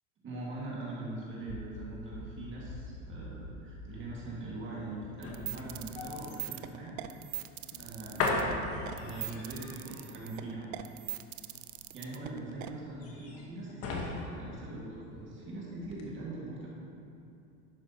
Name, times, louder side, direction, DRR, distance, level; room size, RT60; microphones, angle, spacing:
voice 1, 0.2-7.0 7.8-8.6 9.0-10.8 11.9-16.7, right 2 dB, 30° right, -5 dB, 1.9 m, -42 dB
sound 1, 1.1-15.5 15.8-16.0, left 3 dB, 35° left, 1.3 m, -39 dB
sound 2, 5.2-12.7, right 17 dB, 70° right, 0.6 m, -41 dB
11.0 x 7.7 x 2.9 m, 2.6 s
supercardioid pair, 125°, 41 cm